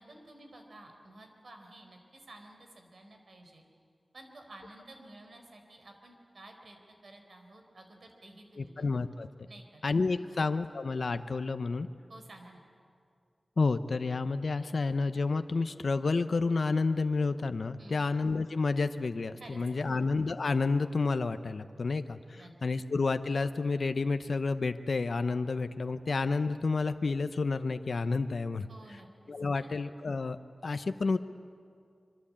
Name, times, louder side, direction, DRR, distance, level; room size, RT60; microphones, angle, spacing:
voice 1, 0.0-3.6 4.1-6.8 7.0-9.0 9.5-9.8 10.1-10.4 12.1-12.6 17.8-18.1 19.4-20.0 22.3-22.5 28.7-29.7, right 1 dB, 75° right, 3 dB, 4.4 m, -52 dB
voice 2, 8.6-9.5 9.8-11.9 13.6-28.7 29.3-30.4 30.6-31.2, left 3 dB, 70° left, 10 dB, 0.8 m, -30 dB
26.5 x 23.0 x 8.7 m, 2.3 s
wide cardioid pair, 80°, 0 cm